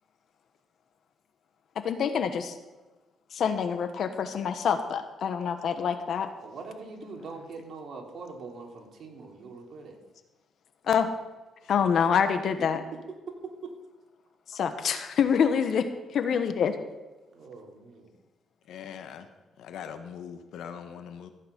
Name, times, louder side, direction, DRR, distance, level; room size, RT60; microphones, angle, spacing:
voice 1, 1.8-2.6 3.3-6.3 10.9-11.1 11.7-12.8 14.5-16.7, left 7 dB, 65° left, 9 dB, 1.3 m, -26 dB
voice 2, 6.4-10.0 12.0-12.1 17.3-18.1, right 4 dB, 55° right, 1 dB, 3.2 m, -43 dB
voice 3, 18.7-19.3 19.6-21.3, left 8 dB, 80° left, 8 dB, 1.3 m, -41 dB
15.0 x 9.1 x 5.4 m, 1.2 s
cardioid pair, 90°, 0 cm